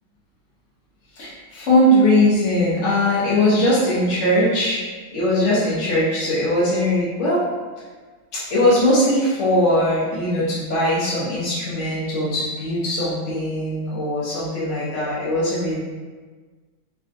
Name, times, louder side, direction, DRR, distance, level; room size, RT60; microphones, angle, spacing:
voice 1, 1.1-4.8 5.1-7.5 8.3-15.8, left 1 dB, 60° left, -9 dB, 0.7 m, -20 dB
3.6 x 2.2 x 2.5 m, 1.4 s
omnidirectional pair, 2.1 m